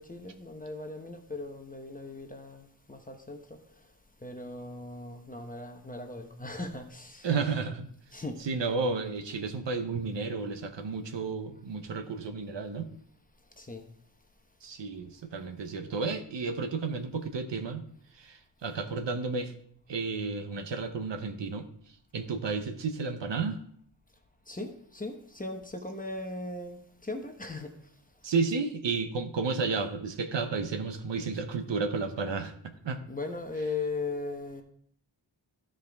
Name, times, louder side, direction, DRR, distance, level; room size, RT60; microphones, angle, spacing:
voice 1, 0.0-3.6 4.2-7.3 8.1-8.4 13.6-13.9 24.5-27.7 33.1-34.6, left 3 dB, 20° left, 0.8 m, -38 dB
voice 2, 7.2-7.9 8.4-12.9 14.6-17.8 18.2-19.5 19.9-21.6 22.1-23.6 28.2-33.0, right 4 dB, 70° right, 0.9 m, -32 dB
13.0 x 5.0 x 3.4 m
wide cardioid pair, 140°, 45 cm